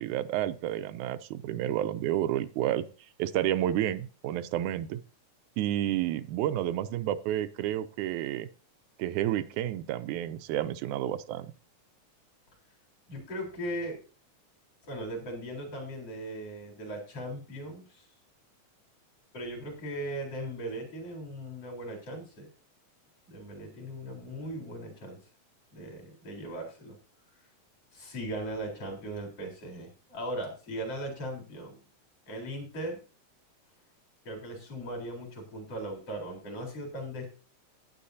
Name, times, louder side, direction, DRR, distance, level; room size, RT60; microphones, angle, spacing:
voice 1, 0.0-2.9 3.2-5.0 5.6-8.5 9.0-11.5, right 12 dB, 85° right, 11 dB, 2.1 m, -30 dB
voice 2, 13.1-14.0 14.9-18.0 19.3-22.5 23.3-25.2 25.7-27.0 27.9-31.8 32.3-33.0 34.2-37.3, right 1 dB, 50° left, 0 dB, 5.0 m, -38 dB
15.0 x 10.5 x 2.8 m, 0.36 s
omnidirectional pair, 3.4 m